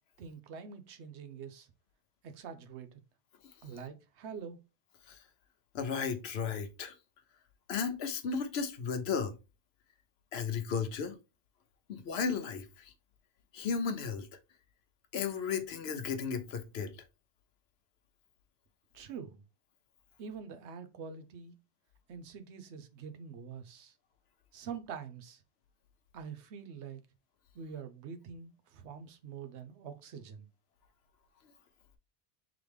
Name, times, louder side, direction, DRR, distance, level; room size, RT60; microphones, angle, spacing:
voice 1, 0.2-1.7 2.2-2.9 3.6-4.6 18.9-19.4 20.2-21.5 22.1-23.9 24.5-25.4 26.1-27.0 27.5-30.5, right 6 dB, 85° right, 1.0 m, -45 dB
voice 2, 5.7-6.9 7.7-9.3 10.3-11.1 11.9-12.9 13.5-14.3 15.1-16.9, left 6 dB, 75° left, 0.9 m, -34 dB
3.9 x 3.1 x 3.3 m
omnidirectional pair, 1.1 m